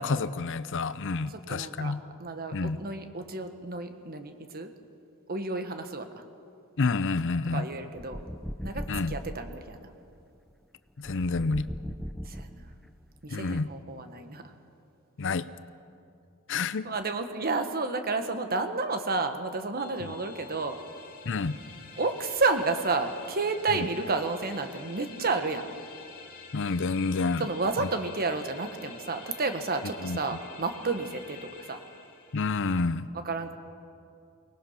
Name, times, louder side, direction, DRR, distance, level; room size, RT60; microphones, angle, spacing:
voice 1, 0.0-2.0 2.5-2.8 6.8-7.6 8.9-9.1 11.0-11.7 13.3-13.7 15.2-15.5 16.5-16.9 21.3-21.6 26.5-27.5 27.8-27.9 30.0-30.2 32.3-33.1, left 4 dB, 60° left, 15 dB, 0.6 m, -28 dB
voice 2, 1.3-1.9 2.2-4.7 5.3-6.1 7.5-8.2 8.6-9.8 12.2-12.7 13.2-14.4 16.5-20.8 22.0-25.6 27.4-31.8 33.2-33.5, right 3 dB, 45° right, 7 dB, 1.4 m, -31 dB
sound 1, 7.9-9.5 11.0-12.9, equal, ahead, 0.5 m, -38 dB
sound 2, 19.8-32.9, left 5 dB, 40° left, 2.9 m, -48 dB
23.5 x 19.0 x 5.8 m, 2.5 s
head